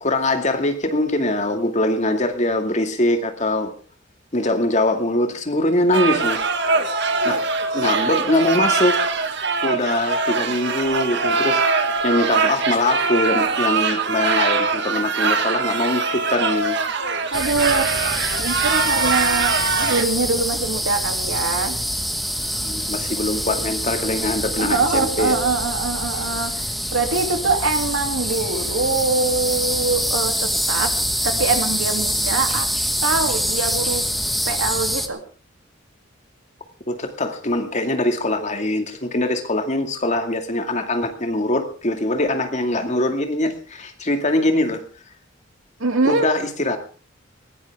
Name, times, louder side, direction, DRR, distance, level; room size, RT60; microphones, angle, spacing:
voice 1, 0.0-3.7 4.3-6.4 7.2-7.4 7.7-9.0 9.6-11.6 12.0-16.8 22.6-25.4 36.9-44.8 46.0-46.9, left 1 dB, 35° left, 6 dB, 2.2 m, -22 dB
sound 1, 5.9-20.0, right 4 dB, 60° right, 1.9 m, -22 dB
sound 2, 17.3-35.1, equal, ahead, 1.3 m, -25 dB
voice 2, 17.3-21.8 24.6-30.9 31.2-32.7 33.0-34.0 34.4-35.2 45.8-46.3, right 3 dB, 90° right, 5 dB, 2.9 m, -23 dB
20.0 x 16.5 x 3.6 m, 0.38 s
head